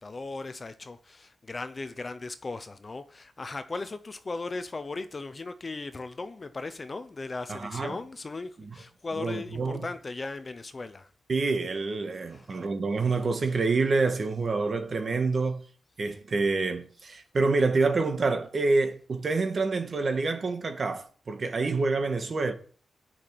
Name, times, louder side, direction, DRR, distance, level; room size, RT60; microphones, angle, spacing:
voice 1, 0.0-11.1 12.3-12.6, left 3 dB, 25° left, 0.7 m, -37 dB
voice 2, 7.5-8.0 8.6-8.7 9.1-9.9 11.3-15.6 16.0-22.5, right 3 dB, 35° right, 1.6 m, -27 dB
10.5 x 5.9 x 8.3 m
wide cardioid pair, 175°, 0 cm